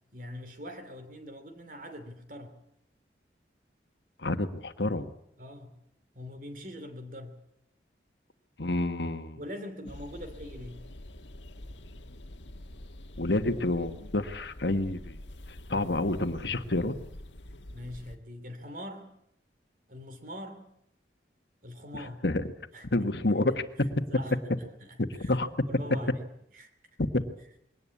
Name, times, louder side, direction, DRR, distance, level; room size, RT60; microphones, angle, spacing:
voice 1, 0.1-2.5 5.4-5.7 6.1-7.4 9.3-10.8 15.7-15.9 17.7-19.1 19.9-20.7 21.6-22.2 22.7-22.9 23.8-25.4 25.6-26.3 26.5-26.7, left 1 dB, 45° right, 8 dB, 2.9 m, -43 dB
voice 2, 4.2-5.1 8.6-9.4 13.2-15.1 15.7-16.9 22.2-22.4 22.9-23.6 25.2-25.5 27.1-27.2, left 2 dB, 70° left, 9 dB, 1.4 m, -28 dB
sound 1, 9.9-18.2, left 1 dB, 85° left, 1.5 m, -46 dB
22.0 x 18.5 x 8.5 m, 0.76 s
head